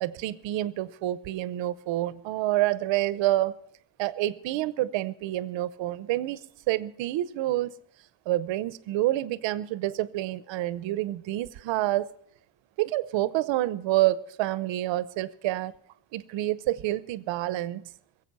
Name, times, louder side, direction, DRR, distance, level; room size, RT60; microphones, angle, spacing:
voice 1, 0.0-3.5 4.0-7.7 8.3-12.1 12.8-15.7 16.1-17.9, right 15 dB, 85° right, 0.8 m, -28 dB
21.5 x 8.1 x 5.5 m
cardioid pair, 140°, 44 cm